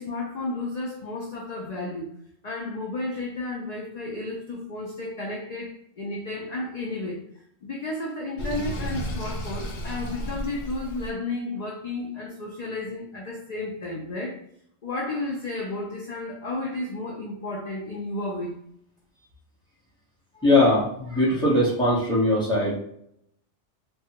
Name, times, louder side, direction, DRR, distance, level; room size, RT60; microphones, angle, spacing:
voice 1, 0.0-2.1 2.4-7.2 7.6-14.4 14.8-18.6, left 2 dB, 50° left, -2 dB, 0.5 m, -32 dB
Sink (filling or washing), 8.4-11.1, equal, 85° left, 1.1 m, -32 dB
voice 2, 20.4-22.8, left 1 dB, 5° left, -8 dB, 1.1 m, -20 dB
3.3 x 2.3 x 2.8 m, 0.70 s
omnidirectional pair, 1.2 m